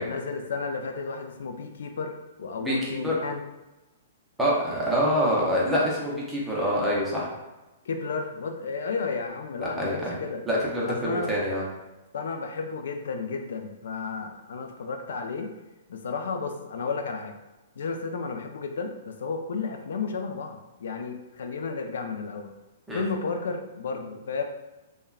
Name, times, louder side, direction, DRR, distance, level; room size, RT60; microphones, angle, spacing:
voice 1, 0.0-2.1 2.4-3.4 7.9-10.4 10.9-11.3 12.1-15.5 15.9-17.3 17.8-22.5 22.9-24.4, left 4 dB, 70° left, 4 dB, 0.3 m, -32 dB
voice 2, 2.6-3.1 4.4-7.3 9.8-10.2 10.5-11.6 22.9-23.0, equal, 5° right, -6 dB, 0.5 m, -25 dB
3.4 x 2.1 x 2.3 m, 1.1 s
hypercardioid pair, 175°, 0 cm